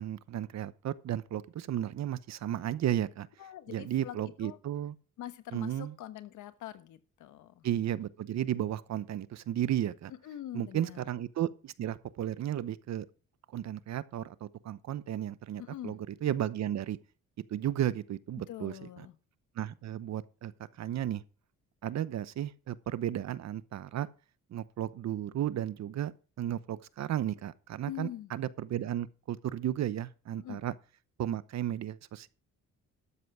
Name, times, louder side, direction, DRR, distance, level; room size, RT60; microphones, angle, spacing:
voice 1, 0.0-3.3 3.7-4.9 5.5-5.9 7.6-10.1 10.5-13.1 13.5-17.0 17.5-19.1 19.5-21.2 21.8-24.1 24.5-26.1 26.4-30.7 31.2-32.3, right 11 dB, 60° right, 0.9 m, -34 dB
voice 2, 3.4-4.6 5.2-7.6 10.2-11.0 15.6-16.0 18.5-19.1 27.9-28.3 30.4-30.6, left 12 dB, 80° left, 1.3 m, -44 dB
12.5 x 7.9 x 4.8 m
cardioid pair, 90°, 30 cm